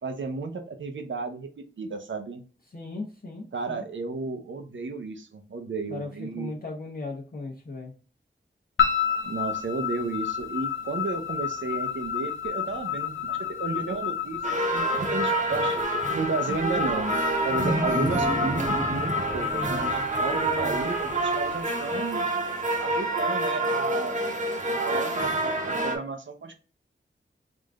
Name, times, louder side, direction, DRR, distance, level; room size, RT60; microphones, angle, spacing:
voice 1, 0.0-2.4 3.5-6.5 9.2-17.2 17.4-22.3 22.8-24.2 24.8-26.5, right 4 dB, 75° right, 6 dB, 0.7 m, -33 dB
voice 2, 2.7-3.8 5.9-7.9 20.5-20.8, left 3 dB, 50° left, -3 dB, 0.8 m, -37 dB
sound 1, 8.8-21.1, left 9 dB, 80° left, 0.8 m, -31 dB
sound 2, 14.4-26.0, right 2 dB, 40° right, 0.9 m, -28 dB
Wild animals, 16.5-21.6, equal, 5° left, 1.0 m, -33 dB
3.7 x 2.5 x 3.4 m, 0.38 s
wide cardioid pair, 60°, 20 cm